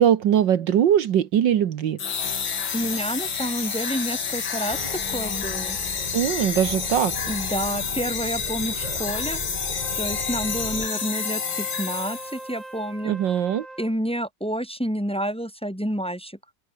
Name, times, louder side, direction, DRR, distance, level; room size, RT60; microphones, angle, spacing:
voice 1, 0.0-2.0 6.1-7.1 13.0-13.7, right 9 dB, 70° right, 1.8 m, -21 dB
sound 1, 2.0-12.5, left 6 dB, 75° left, 3.0 m, -29 dB
voice 2, 2.7-5.8 7.3-9.4 10.0-13.2 13.8-16.4, equal, 5° left, 2.7 m, -29 dB
sound 2, 4.7-10.9, right 1 dB, 20° right, 4.2 m, -38 dB
Wind instrument woodwind instrument, 9.7-14.0, right 2 dB, 40° right, 5.5 m, -41 dB
omnidirectional pair, 2.1 m